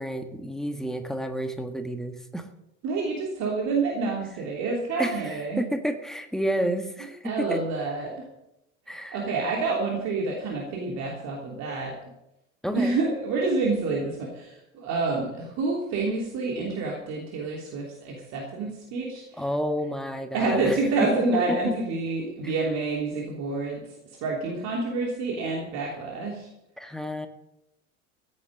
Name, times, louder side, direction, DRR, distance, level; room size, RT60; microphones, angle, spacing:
voice 1, 0.0-2.5 5.0-7.6 8.9-9.3 12.6-13.0 19.4-20.8 21.2-21.6 22.4-22.5 26.8-27.3, equal, ahead, 6 dB, 1.6 m, -30 dB
voice 2, 2.8-5.6 7.2-8.2 9.1-11.9 12.7-19.4 20.3-23.8 24.2-26.5, right 3 dB, 40° right, -1 dB, 3.2 m, -28 dB
15.5 x 9.6 x 6.5 m, 0.87 s
figure-of-eight pair, 75°, 40 cm